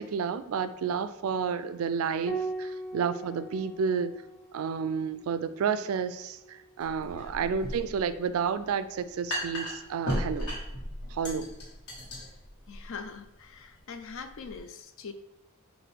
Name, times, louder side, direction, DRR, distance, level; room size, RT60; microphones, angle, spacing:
voice 1, 0.0-4.1 4.5-10.5 11.1-11.5, right 6 dB, 65° right, 13 dB, 0.3 m, -31 dB
Piano, 2.3-7.1 8.8-9.6, right 3 dB, ahead, 0.6 m, -41 dB
sound 1, 6.8-14.6, equal, 85° left, 1.5 m, -37 dB
voice 2, 7.0-7.4 12.7-15.1, left 5 dB, 60° left, 8 dB, 0.4 m, -43 dB
5.8 x 2.6 x 3.4 m, 0.89 s
head